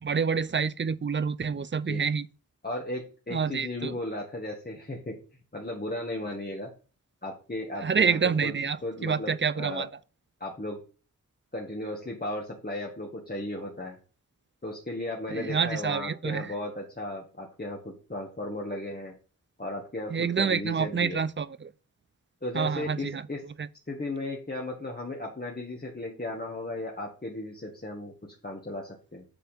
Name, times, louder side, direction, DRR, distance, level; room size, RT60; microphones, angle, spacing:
voice 1, 0.0-2.3 3.3-4.0 7.8-9.9 15.3-16.5 20.1-21.7 22.5-23.3 23.6-23.7, right 6 dB, 35° right, 0.5 m, -28 dB
voice 2, 2.6-5.2 5.5-6.7 7.2-8.5 8.8-9.9 10.4-10.8 11.5-14.0 14.6-19.1 19.6-21.2 22.4-23.4 23.9-29.2, left 1 dB, 30° left, 1.8 m, -35 dB
7.7 x 3.4 x 5.8 m
cardioid pair, 55°, 34 cm